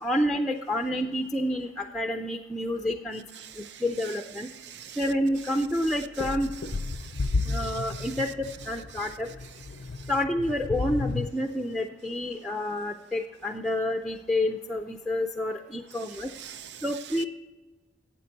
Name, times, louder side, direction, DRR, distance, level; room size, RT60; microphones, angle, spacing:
voice 1, 0.0-3.3 3.8-4.5 5.0-6.5 7.5-9.3 10.1-16.3 16.8-17.2, left 1 dB, ahead, 0.4 m, -29 dB
voice 2, 3.3-10.1 15.9-17.3, right 9 dB, 70° right, 0.6 m, -46 dB
sound 1, 5.0-5.2 5.7-11.3, left 3 dB, 65° left, 0.4 m, -33 dB
12.0 x 8.3 x 4.0 m
head